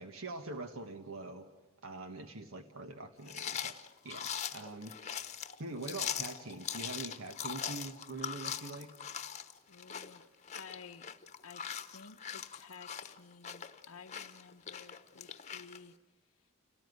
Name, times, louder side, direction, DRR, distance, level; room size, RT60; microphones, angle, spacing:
voice 1, 0.0-1.5 1.8-3.7 4.0-4.9 5.6-8.9, right 2 dB, 70° right, 7 dB, 1.3 m, -44 dB
sound 1, 3.3-15.8, left 8 dB, 30° left, 1.1 m, -41 dB
voice 2, 9.7-10.2 10.5-11.1 11.4-15.9, left 5 dB, 90° left, 3 dB, 0.9 m, -53 dB
30.0 x 18.0 x 9.5 m, 1.1 s
head